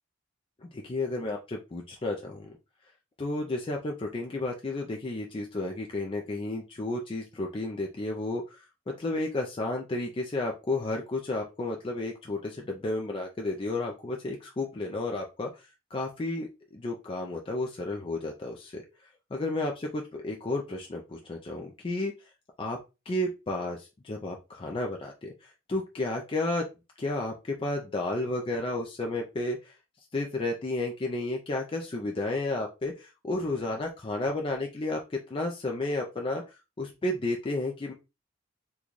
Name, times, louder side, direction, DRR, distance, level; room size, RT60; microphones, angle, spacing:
voice 1, 0.6-2.5 3.2-8.4 8.9-15.5 15.9-18.8 19.3-22.1 22.6-22.8 23.1-26.6 27.0-29.7 30.1-36.4 36.8-37.9, left 2 dB, 25° left, 1 dB, 0.4 m, -32 dB
3.8 x 2.3 x 3.0 m, 0.27 s
head